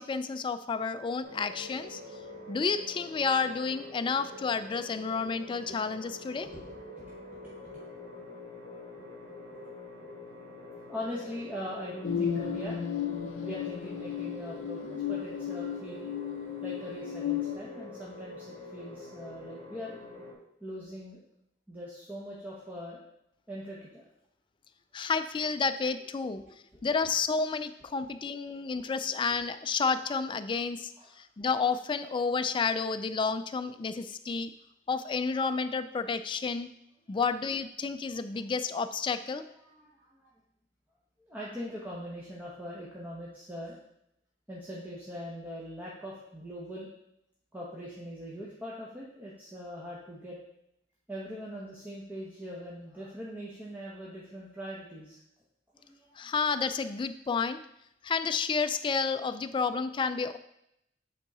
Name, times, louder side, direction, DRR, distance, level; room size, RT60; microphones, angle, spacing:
voice 1, 0.0-2.0 2.5-6.5 24.9-26.4 26.8-34.5 34.9-36.7 37.1-39.4 56.2-57.6 58.0-60.4, left 5 dB, 25° left, 10 dB, 0.3 m, -30 dB
sound 1, 1.2-20.3, left 2 dB, 65° right, 2.4 m, -45 dB
voice 2, 6.4-7.9 10.9-12.8 13.4-16.1 16.6-20.0 20.6-21.2 21.7-23.0 23.5-24.1 26.4-26.9 31.0-31.2 37.1-37.2 39.4-40.3 41.2-43.8 44.5-46.9 47.5-50.4 51.1-55.2 55.7-56.2, equal, 10° right, -6 dB, 0.9 m, -42 dB
sound 2, 12.0-17.6, left 9 dB, 85° left, 0.5 m, -34 dB
8.1 x 3.6 x 4.1 m, 0.79 s
head